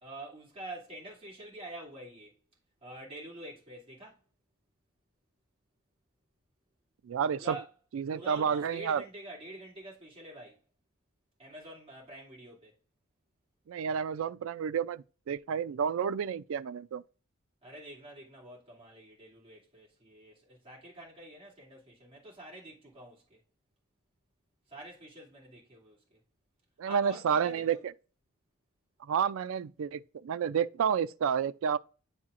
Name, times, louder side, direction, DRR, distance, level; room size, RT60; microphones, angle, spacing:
voice 1, 0.0-2.4 2.8-4.2 7.3-7.7 8.1-10.6 11.4-12.7 17.6-23.4 24.7-26.2 26.8-27.8, right 1 dB, 25° right, 2.4 m, -47 dB
voice 2, 7.0-7.6 7.9-9.0 13.7-17.0 26.8-27.8 29.0-31.8, right 7 dB, 65° right, 0.3 m, -30 dB
9.5 x 4.3 x 2.5 m
head